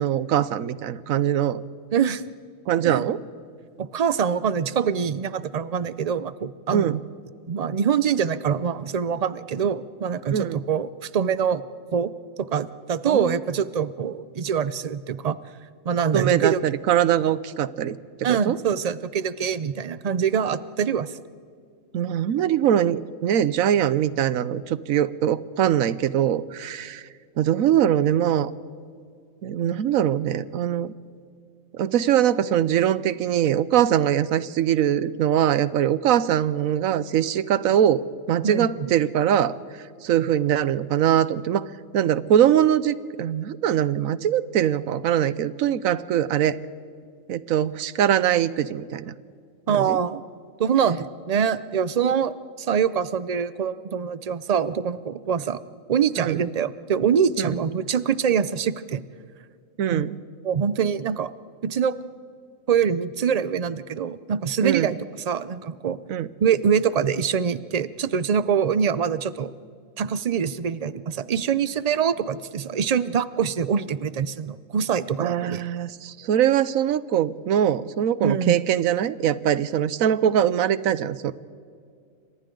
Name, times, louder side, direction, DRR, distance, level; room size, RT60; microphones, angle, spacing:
voice 1, 0.0-1.6 2.7-3.2 6.7-7.0 10.3-10.6 13.1-13.4 16.1-18.6 21.9-27.1 27.4-28.5 29.4-30.9 31.7-38.0 38.3-39.6 40.0-41.7 41.9-46.6 47.3-49.1 49.7-50.0 56.2-56.4 57.4-57.5 59.8-60.2 64.6-65.0 66.1-66.3 75.2-81.3, right 10 dB, 90° right, 16 dB, 1.1 m, -22 dB
voice 2, 1.9-2.2 2.8-3.0 3.8-6.9 7.5-11.6 11.9-12.1 12.4-15.4 15.9-16.6 18.2-21.2 38.4-38.9 49.7-50.2 50.6-55.6 55.9-59.0 59.9-60.0 60.4-61.3 61.6-61.9 62.7-65.0 65.3-66.0 66.4-69.5 70.0-75.6 78.2-78.6, right 7 dB, 50° right, 15 dB, 0.4 m, -24 dB
28.0 x 25.5 x 3.8 m, 2.2 s
omnidirectional pair, 1.4 m